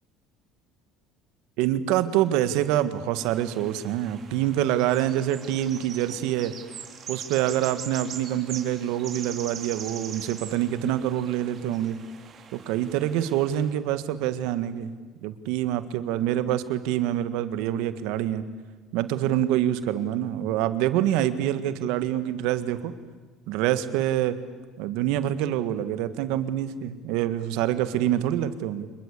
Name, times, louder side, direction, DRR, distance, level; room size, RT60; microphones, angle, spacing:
voice 1, 1.6-6.5 7.1-12.0 12.5-14.9 15.2-18.4 18.9-22.9 23.5-24.3 24.8-28.9, right 12 dB, 75° right, 12 dB, 1.7 m, -26 dB
sound 1, 3.2-13.7, right 7 dB, 40° right, 3.4 m, -42 dB
26.0 x 22.0 x 8.4 m, 1.4 s
supercardioid pair, 105°, 0 cm